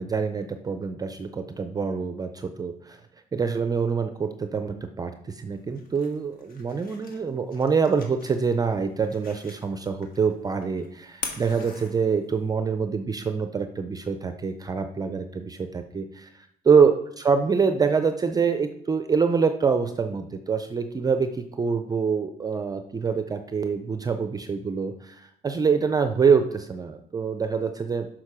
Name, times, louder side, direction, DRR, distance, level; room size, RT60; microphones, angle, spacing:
voice 1, 0.0-3.0 3.3-16.3 16.6-28.1, right 5 dB, 20° right, 8 dB, 0.4 m, -25 dB
sound 1, 5.5-12.5, left 4 dB, 60° left, 1.6 m, -43 dB
6.3 x 6.0 x 4.8 m, 0.71 s
cardioid pair, 110°, 17 cm